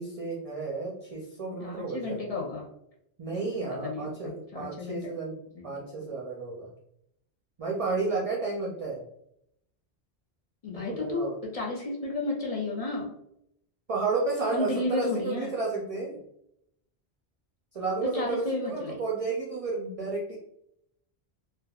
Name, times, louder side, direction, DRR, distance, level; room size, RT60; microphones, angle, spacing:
voice 1, 0.0-2.2 3.2-5.4 5.6-6.7 7.6-9.0 10.9-11.4 13.9-16.2 17.7-20.4, right 4 dB, 50° right, -3 dB, 0.4 m, -32 dB
voice 2, 1.6-2.7 3.6-5.1 5.5-5.8 10.6-13.1 14.5-15.5 18.0-19.0, left 3 dB, 50° left, -2 dB, 0.5 m, -32 dB
3.4 x 2.3 x 2.2 m, 0.76 s
omnidirectional pair, 1.1 m